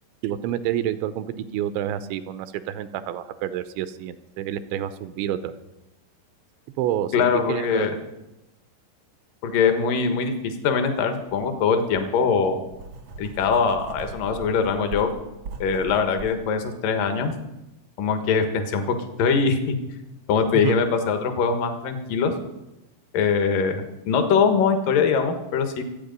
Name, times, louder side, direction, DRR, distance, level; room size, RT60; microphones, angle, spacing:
voice 1, 0.2-1.3 1.5-5.6 6.8-7.9 20.5-20.8, right 11 dB, 85° right, 12 dB, 2.9 m, -28 dB
voice 2, 7.1-8.0 9.4-10.3 10.6-12.6 13.2-15.1 15.6-17.3 18.0-18.8 19.2-19.7 20.3-22.3 23.1-25.8, left 5 dB, 65° left, 6 dB, 2.5 m, -22 dB
Writing, 11.3-11.5 11.9-16.3, right 4 dB, 60° right, 1.5 m, -39 dB
25.5 x 8.7 x 5.3 m, 0.95 s
omnidirectional pair, 5.3 m